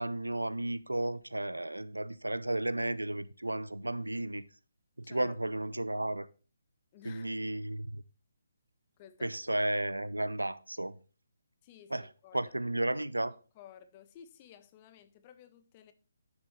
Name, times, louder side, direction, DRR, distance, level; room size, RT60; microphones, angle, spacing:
voice 1, 0.0-4.4 5.0-6.3 7.0-8.0 9.2-10.9 11.9-12.1 12.3-13.4, right 1 dB, 80° right, 0.6 m, -33 dB
voice 2, 5.0-5.3 6.9-7.3 9.0-9.4 11.6-12.5 12.9-13.0 13.5-15.9, left 10 dB, 25° left, 0.8 m, -54 dB
9.8 x 7.3 x 3.2 m
figure-of-eight pair, 140°, 0 cm